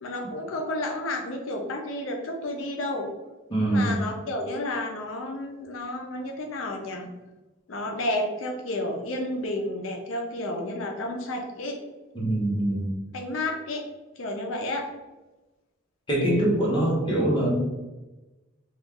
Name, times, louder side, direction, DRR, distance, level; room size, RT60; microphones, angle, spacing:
voice 1, 0.0-3.1 3.6-7.1 7.7-11.8 13.1-13.9 14.2-14.9, left 1 dB, 85° left, 2 dB, 0.5 m, -31 dB
voice 2, 3.5-4.0 12.1-13.0 16.1-17.5, right 1 dB, 25° left, -5 dB, 1.0 m, -24 dB
3.0 x 2.3 x 3.4 m, 1.1 s
head